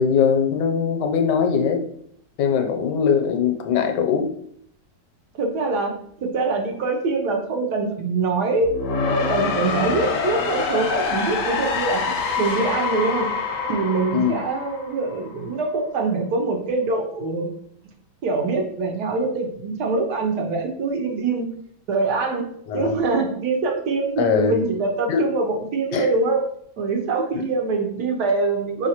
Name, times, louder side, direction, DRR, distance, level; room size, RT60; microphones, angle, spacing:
voice 1, 0.0-1.8 2.4-4.3 14.1-14.3 22.7-23.0 24.2-24.6 25.1-25.2 25.9-26.1 27.3-27.4, left 6 dB, 80° left, 5 dB, 1.2 m, -21 dB
voice 2, 5.3-8.8 9.1-13.3 13.7-17.5 18.2-21.5 21.9-22.5 22.7-26.4 26.8-28.9, right 3 dB, 70° right, 3 dB, 1.3 m, -24 dB
sound 1, 8.6-15.5, left 4 dB, 65° left, 0.8 m, -26 dB
5.2 x 3.2 x 2.8 m, 0.66 s
omnidirectional pair, 1.9 m